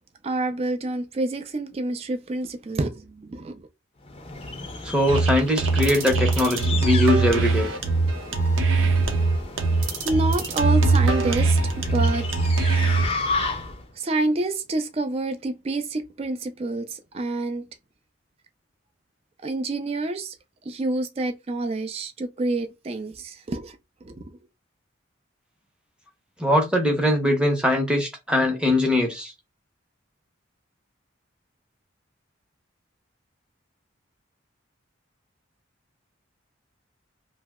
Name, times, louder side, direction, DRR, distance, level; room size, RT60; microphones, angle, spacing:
voice 1, 0.2-3.7 10.0-12.2 13.9-17.6 19.4-20.3 20.7-24.2, right 2 dB, 30° right, 0.3 m, -28 dB
sound 1, 4.1-13.9, left 3 dB, 30° left, 0.5 m, -34 dB
voice 2, 4.8-7.7 26.4-29.3, left 1 dB, 5° right, 0.7 m, -21 dB
sound 2, 5.1-13.1, right 3 dB, 85° right, 0.7 m, -21 dB
2.7 x 2.0 x 3.4 m
head